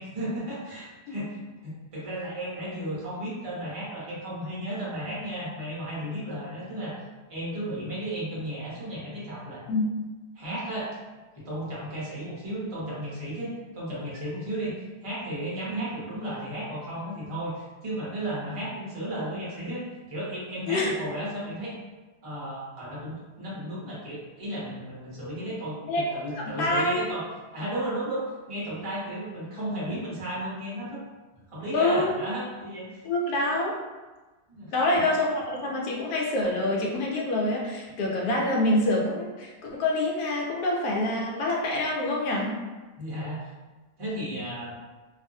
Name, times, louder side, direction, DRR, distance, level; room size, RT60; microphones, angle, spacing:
voice 1, 0.0-1.4 1.6-6.9 7.3-9.6 10.3-11.0 11.3-21.7 22.2-27.3 27.5-31.0 31.5-33.0 34.5-34.7 43.0-43.4 44.0-44.7, right 1 dB, 35° right, -7 dB, 0.5 m, -34 dB
voice 2, 25.8-27.0 31.7-32.1 33.0-33.7 34.7-42.5, left 1 dB, 80° left, -2 dB, 1.2 m, -26 dB
2.6 x 2.4 x 2.6 m, 1.2 s
omnidirectional pair, 1.7 m